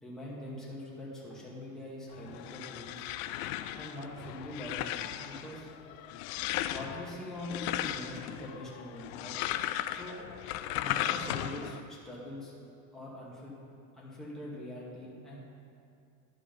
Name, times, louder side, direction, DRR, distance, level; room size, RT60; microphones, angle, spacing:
voice 1, 0.0-3.1 3.7-5.7 6.7-9.4 9.9-10.3 10.8-12.5 12.9-13.6 13.9-15.4, left 1 dB, ahead, -7 dB, 2.2 m, -43 dB
sound 1, 2.1-11.8, left 13 dB, 70° left, 0.5 m, -36 dB
11.5 x 5.1 x 5.3 m, 2.5 s
supercardioid pair, 125°, 43 cm